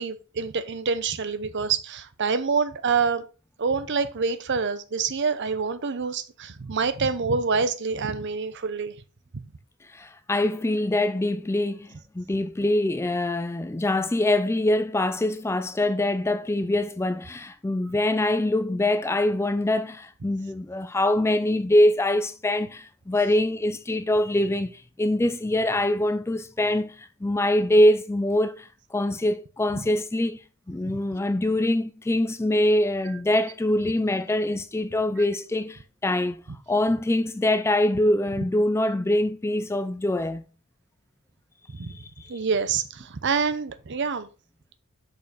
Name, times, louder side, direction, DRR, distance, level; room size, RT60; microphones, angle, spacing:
voice 1, 0.0-3.3 3.6-8.9 41.7-41.9 42.3-44.3, right 5 dB, 55° right, 0.7 m, -26 dB
voice 2, 9.9-30.4 30.7-40.4 41.9-42.3, left 1 dB, 10° left, 0.3 m, -24 dB
6.6 x 5.3 x 4.0 m
head